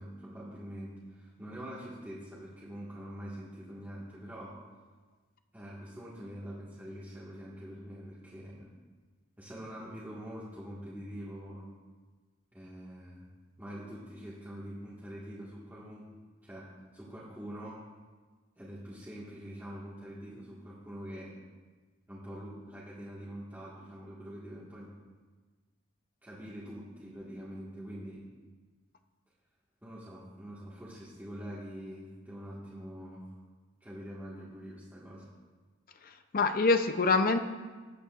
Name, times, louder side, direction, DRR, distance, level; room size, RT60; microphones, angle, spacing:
voice 1, 0.0-4.5 5.5-8.7 9.4-11.7 12.5-13.3 13.6-16.0 16.4-16.7 16.9-17.8 18.6-21.3 22.1-24.9 26.2-28.2 29.8-33.4 33.8-35.3, equal, 10° right, -9 dB, 1.6 m, -44 dB
voice 2, 36.0-37.4, left 3 dB, 45° left, 8 dB, 0.6 m, -26 dB
19.5 x 8.4 x 2.4 m, 1.4 s
head